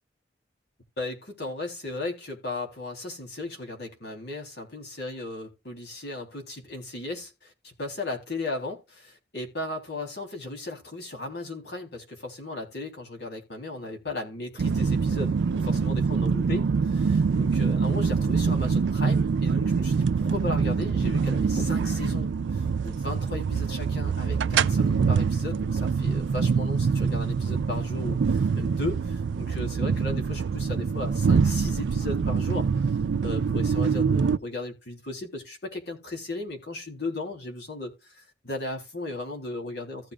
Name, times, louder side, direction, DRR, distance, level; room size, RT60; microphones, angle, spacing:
voice 1, 1.0-32.7 33.2-40.1, left 2 dB, 70° left, 3.4 m, -36 dB
sound 1, 14.6-34.4, right 5 dB, 80° right, 0.4 m, -25 dB
15.5 x 6.7 x 2.4 m
head